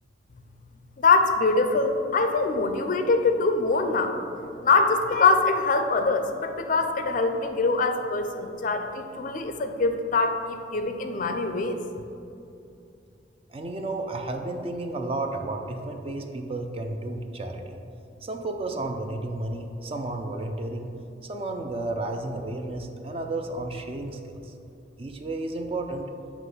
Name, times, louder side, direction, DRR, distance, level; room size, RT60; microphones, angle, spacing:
voice 1, 1.0-4.2 4.6-11.8, left 3 dB, 45° left, 6 dB, 0.4 m, -23 dB
voice 2, 13.5-17.8 18.2-20.9 21.2-24.5 25.0-26.1, right 2 dB, 30° right, 4 dB, 0.4 m, -32 dB
7.5 x 3.0 x 5.5 m, 2.7 s
head